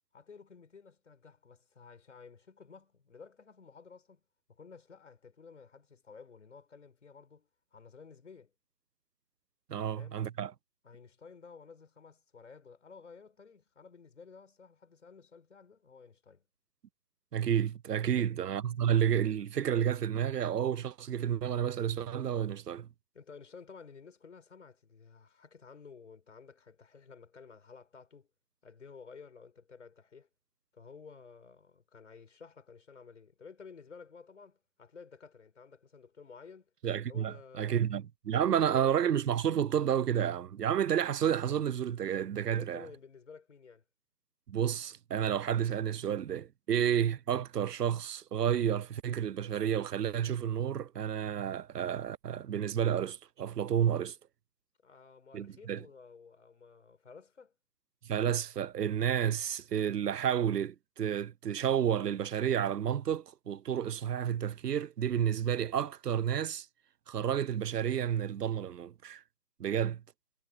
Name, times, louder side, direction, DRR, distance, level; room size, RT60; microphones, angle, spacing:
voice 1, 0.1-4.2 4.5-8.5 9.7-10.2 10.8-16.4 18.0-18.4 23.1-28.3 28.6-30.3 30.7-36.7 37.1-37.9 38.4-38.9 42.5-43.8 54.8-57.5, left 5 dB, 50° left, 6.0 m, -53 dB
voice 2, 9.7-10.5 17.3-22.9 36.8-42.8 44.5-54.2 55.3-55.8 58.0-66.7 67.1-69.2 69.6-70.0, right 9 dB, 90° right, 0.6 m, -31 dB
figure-of-eight pair, 160°, 47 cm